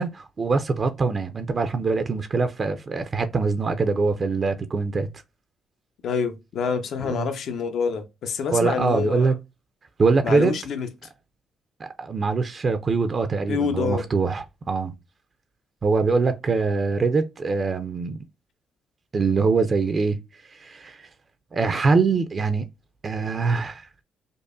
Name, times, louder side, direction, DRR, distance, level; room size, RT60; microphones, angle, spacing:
voice 1, 0.0-5.1 7.0-7.3 8.5-9.4 10.0-10.5 11.8-14.9 15.8-18.2 19.1-20.2 20.4-21.1 21.5-22.7 23.0-23.9, right 4 dB, 40° right, 0.5 m, -23 dB
voice 2, 6.0-9.3 10.2-10.9 13.5-14.1, left 6 dB, 70° left, 0.8 m, -27 dB
5.2 x 2.1 x 2.5 m
cardioid pair, 90°, 0 cm